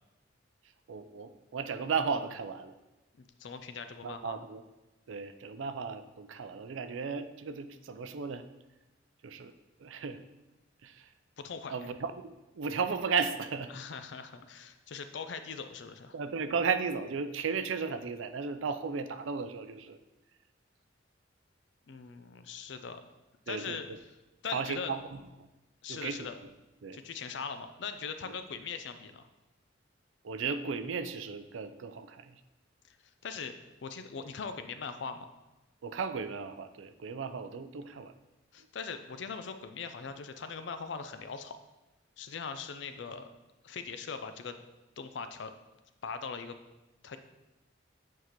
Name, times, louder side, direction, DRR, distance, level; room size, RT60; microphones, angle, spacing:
voice 1, 0.9-2.7 4.0-4.6 5.1-8.4 9.2-9.5 9.8-10.2 10.8-11.0 11.7-12.1 12.6-13.7 16.1-20.0 23.5-23.8 24.5-25.0 25.9-26.3 26.8-27.0 30.2-32.3 35.8-38.1, right 5 dB, 85° right, 9 dB, 0.4 m, -35 dB
voice 2, 3.4-4.4 11.4-11.8 13.7-16.2 21.9-23.0 23.5-23.9 24.4-24.9 25.8-26.3 26.9-29.3 32.9-33.0 33.2-33.5 33.8-35.3 38.5-41.6 42.2-43.3 43.6-44.6 45.0-45.5 46.0-46.6 47.0-47.2, left 5 dB, 65° left, 9 dB, 0.4 m, -40 dB
8.0 x 4.7 x 3.0 m, 1.0 s
head